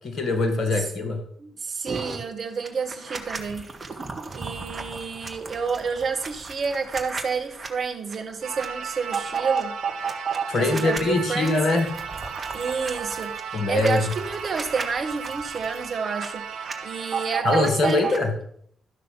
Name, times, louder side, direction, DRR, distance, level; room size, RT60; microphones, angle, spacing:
voice 1, 0.0-1.2 10.5-11.9 13.5-14.0 17.4-18.3, left 2 dB, 55° left, 5 dB, 1.9 m, -23 dB
voice 2, 1.4-3.7 4.3-9.7 10.6-11.6 12.5-18.1, right 5 dB, 55° right, 6 dB, 1.5 m, -29 dB
sound 1, 1.9-2.2 2.6-7.7 8.1-8.2 8.5-11.0 11.4-16.3 16.5-18.2, right 5 dB, 40° right, 1.8 m, -33 dB
sound 2, 8.4-17.4, right 7 dB, 70° right, 0.8 m, -36 dB
13.0 x 6.2 x 5.8 m, 0.65 s
hypercardioid pair, 40°, 0 cm